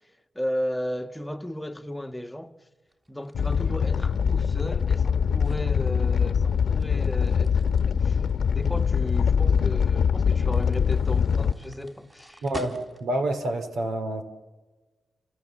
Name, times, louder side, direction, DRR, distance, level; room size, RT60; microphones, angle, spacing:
voice 1, 0.3-2.5 3.1-8.2 8.5-12.4, equal, 10° left, 1.3 m, -34 dB
sound 1, 2.9-13.3, right 1 dB, 25° right, 3.5 m, -47 dB
Animal, 3.3-11.5, left 6 dB, 70° left, 1.0 m, -23 dB
voice 2, 12.4-14.2, right 1 dB, 80° right, 2.6 m, -28 dB
29.0 x 26.0 x 7.4 m
cardioid pair, 75°, 0 cm